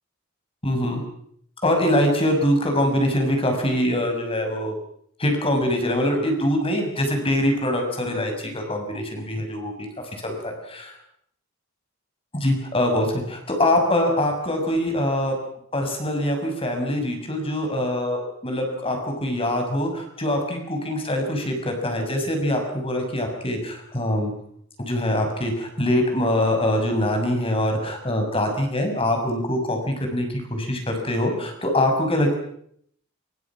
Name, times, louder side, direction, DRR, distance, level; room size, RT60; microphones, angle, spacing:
voice 1, 0.6-1.0 1.6-4.7 5.2-9.9 10.2-10.9 12.3-15.4 15.7-24.3 24.9-32.4, left 1 dB, 25° left, 4 dB, 6.2 m, -23 dB
26.5 x 24.5 x 6.0 m, 0.67 s
head